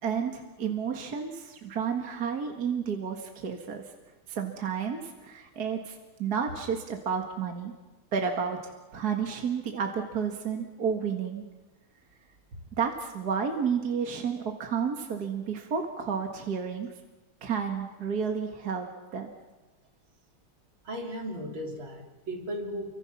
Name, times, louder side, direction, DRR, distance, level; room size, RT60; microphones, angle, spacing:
voice 1, 0.0-3.9 4.3-7.7 8.1-11.5 12.8-16.9 17.4-19.3, right 6 dB, 50° right, 3 dB, 2.2 m, -31 dB
voice 2, 20.8-22.9, equal, 70° right, 0 dB, 4.3 m, -36 dB
29.5 x 24.5 x 5.9 m, 1.1 s
omnidirectional pair, 2.3 m